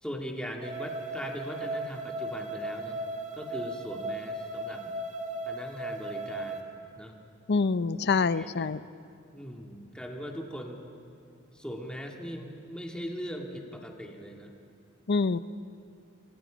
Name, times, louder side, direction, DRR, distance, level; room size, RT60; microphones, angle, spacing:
voice 1, 0.0-3.0 3.3-5.0 5.4-6.6 7.0-7.2 8.3-8.7 9.3-10.8 11.5-14.6, equal, 5° left, 1 dB, 2.2 m, -40 dB
sound 1, 0.6-6.6, right 1 dB, 35° right, 2.0 m, -36 dB
voice 2, 7.5-8.8 15.1-15.4, left 4 dB, 55° left, 15 dB, 0.6 m, -26 dB
28.0 x 25.5 x 5.2 m, 2.5 s
head